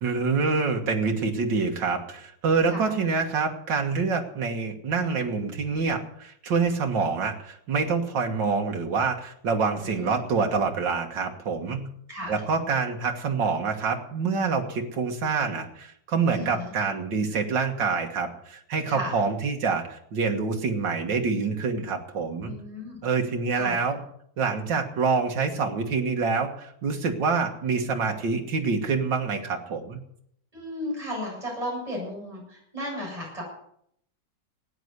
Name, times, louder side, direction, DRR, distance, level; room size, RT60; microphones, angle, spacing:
voice 1, 0.0-11.9 12.3-22.5 23.0-24.0 24.4-30.0, right 4 dB, 85° right, 3 dB, 2.3 m, -26 dB
voice 2, 9.7-10.2 12.1-12.4 16.3-16.7 18.9-19.2 22.4-23.0 23.5-23.9 30.5-33.4, left 1 dB, 20° right, -4 dB, 7.8 m, -35 dB
15.5 x 9.4 x 8.1 m, 0.70 s
omnidirectional pair, 1.9 m